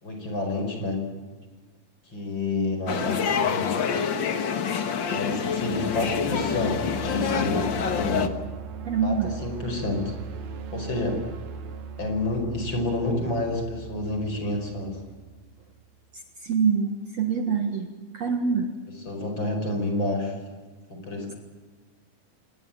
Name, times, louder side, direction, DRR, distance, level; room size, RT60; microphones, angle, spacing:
voice 1, 0.0-1.1 2.1-3.8 5.1-7.7 8.0-8.4 9.0-10.1 10.7-11.3 12.0-15.0 19.1-20.4 20.9-21.4, left 2 dB, 30° left, 4 dB, 5.6 m, -29 dB
sound 1, 2.9-8.3, left 6 dB, 55° left, 1.3 m, -26 dB
sound 2, 5.3-16.0, right 5 dB, 75° right, 3.6 m, -39 dB
voice 2, 8.8-9.3 16.4-17.9 18.1-18.7, right 6 dB, 55° right, 6 dB, 2.4 m, -25 dB
27.0 x 20.5 x 8.7 m, 1.3 s
omnidirectional pair, 4.2 m